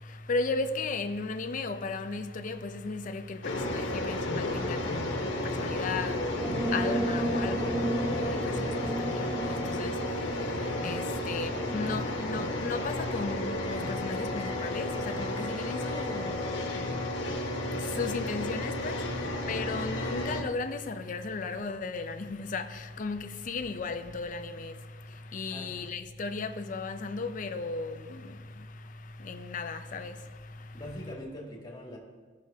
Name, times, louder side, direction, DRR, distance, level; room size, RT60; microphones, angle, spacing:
voice 1, 0.0-17.0 17.7-24.8 25.1-28.7 29.2-30.2 30.6-30.7, left 3 dB, 45° left, 0.5 m, -36 dB
sound 1, 3.4-20.4, left 1 dB, 85° left, 1.2 m, -32 dB
sound 2, 6.4-12.7, right 1 dB, 10° right, 0.5 m, -34 dB
voice 2, 19.1-19.4 25.5-25.8 30.7-32.0, equal, 25° left, 1.7 m, -43 dB
14.0 x 6.2 x 2.8 m
head